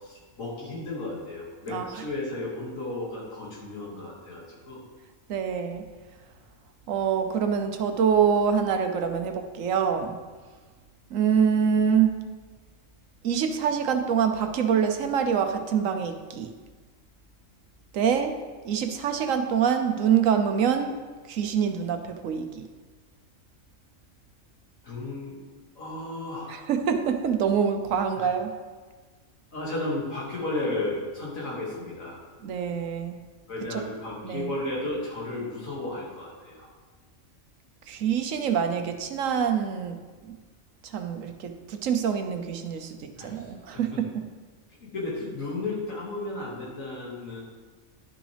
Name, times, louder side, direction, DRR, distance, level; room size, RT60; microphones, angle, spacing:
voice 1, 0.0-4.8 24.8-25.4 25.8-26.7 28.2-28.3 29.5-32.2 33.5-36.7 43.2-43.5 44.9-47.4, left 2 dB, 85° left, -5 dB, 2.5 m, -34 dB
voice 2, 1.7-2.0 5.3-5.9 6.9-10.2 11.1-12.2 13.2-16.5 17.9-18.3 18.6-21.0 21.3-22.7 26.5-28.5 32.4-33.2 33.7-33.8 34.2-34.5 37.9-40.4 40.8-44.2, right 7 dB, 80° right, 6 dB, 1.1 m, -25 dB
11.0 x 6.1 x 3.4 m, 1.4 s
omnidirectional pair, 1.4 m